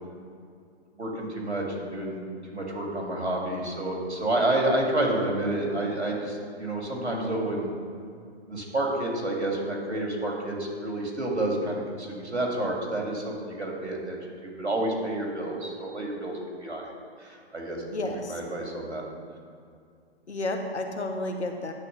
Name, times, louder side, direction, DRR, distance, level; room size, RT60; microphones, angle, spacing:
voice 1, 0.9-2.2 2.5-7.7 8.5-14.2 14.4-16.9 17.2-17.8 18.1-19.0, right 1 dB, 90° right, -1 dB, 2.2 m, -29 dB
voice 2, 17.9-18.4 20.3-21.7, left 2 dB, 85° left, 4 dB, 1.1 m, -31 dB
10.5 x 3.9 x 6.4 m, 2.3 s
figure-of-eight pair, 125°, 33 cm